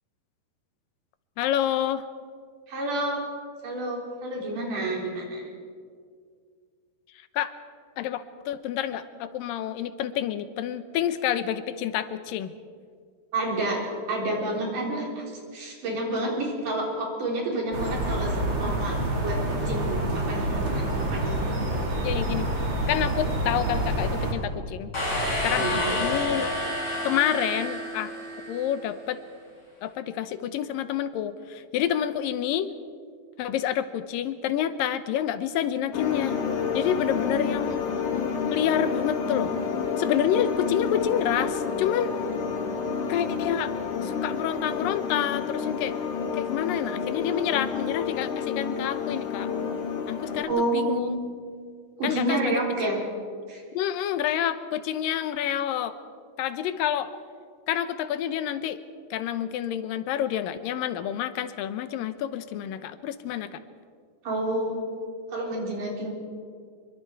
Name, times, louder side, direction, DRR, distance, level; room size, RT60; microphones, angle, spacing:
voice 1, 1.4-2.0 7.3-7.5 8.0-12.5 22.0-22.5 22.9-24.9 25.4-26.5 27.0-28.1 28.5-29.2 29.8-32.7 33.4-36.4 36.7-37.8 38.5-39.5 40.0-42.1 43.1-43.7 44.0-45.9 46.3-49.5 50.1-51.1 52.0-52.5 53.7-55.9 56.4-57.1 57.7-58.8 59.1-63.6, left 10 dB, 85° left, 12 dB, 2.6 m, -28 dB
voice 2, 2.7-3.2 3.6-5.5 13.3-13.8 14.1-15.3 15.5-21.4 25.6-26.0 50.5-51.4 52.0-53.0 53.5-53.6 64.2-64.8 65.3-66.1, right 1 dB, 70° right, -1 dB, 5.5 m, -29 dB
sound 1, 17.7-24.3, right 1 dB, 35° right, 3.4 m, -27 dB
sound 2, 24.9-28.7, left 1 dB, 30° left, 8.1 m, -29 dB
sound 3, 35.9-50.4, left 5 dB, 65° left, 3.3 m, -29 dB
26.0 x 23.5 x 4.7 m, 2.1 s
omnidirectional pair, 3.9 m